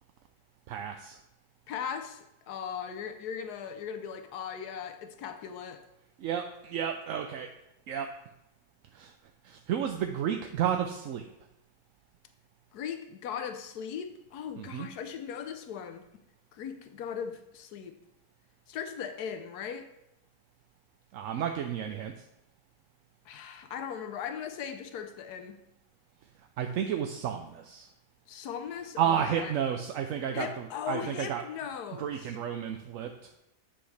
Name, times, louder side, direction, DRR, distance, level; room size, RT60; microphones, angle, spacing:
voice 1, 0.7-1.2 6.2-7.5 7.9-8.1 8.9-9.1 9.4-11.2 14.6-14.9 21.1-22.1 26.6-27.9 29.0-31.4 32.0-33.3, right 9 dB, 65° right, 5 dB, 0.9 m, -32 dB
voice 2, 1.7-5.8 12.7-16.0 16.5-17.9 18.7-19.9 23.3-25.6 28.3-29.5 30.3-32.3, left 7 dB, 80° left, 7 dB, 1.3 m, -38 dB
8.5 x 7.8 x 3.3 m, 0.87 s
omnidirectional pair, 1.7 m